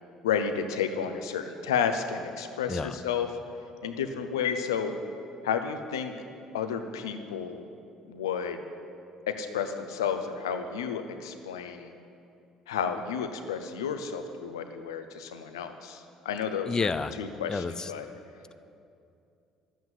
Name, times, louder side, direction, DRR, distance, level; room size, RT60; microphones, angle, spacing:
voice 1, 0.2-3.3 3.8-5.0 5.4-6.1 6.5-7.7 8.1-8.6 9.3-11.9 12.7-16.9 17.2-18.1, left 7 dB, 85° left, 8 dB, 0.8 m, -31 dB
voice 2, 16.7-17.1 17.5-17.9, left 4 dB, 30° left, 13 dB, 0.6 m, -30 dB
12.0 x 8.3 x 7.8 m, 2.6 s
hypercardioid pair, 55°, 2 cm